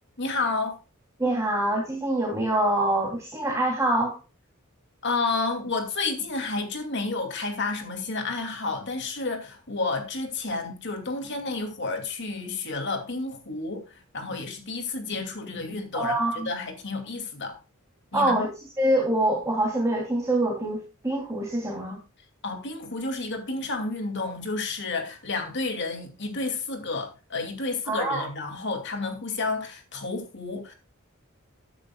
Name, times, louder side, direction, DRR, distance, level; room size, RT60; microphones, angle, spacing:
voice 1, 0.2-0.8 5.0-17.5 18.1-18.4 22.4-30.7, left 3 dB, 55° left, 2.5 m, -31 dB
voice 2, 1.2-4.2 15.9-16.5 18.1-18.5 18.8-22.0 27.9-28.2, right 1 dB, 15° right, 3.0 m, -25 dB
13.5 x 9.7 x 2.3 m
head